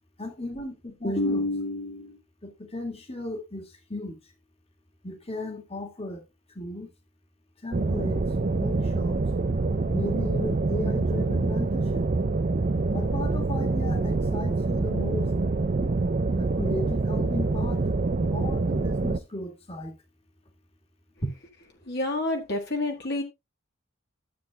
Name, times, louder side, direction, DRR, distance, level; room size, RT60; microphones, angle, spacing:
voice 1, 0.2-4.2 5.0-6.2 6.6-6.9 7.6-8.2 8.5-9.2 9.9-12.1 12.9-15.3 16.3-17.8 18.3-19.9 21.2-21.3, left 1 dB, 30° left, 1.9 m, -34 dB
sound 1, 7.7-19.2, right 3 dB, 40° right, 0.5 m, -26 dB
voice 2, 21.9-23.2, left 2 dB, 55° left, 1.5 m, -28 dB
13.0 x 8.1 x 2.3 m
head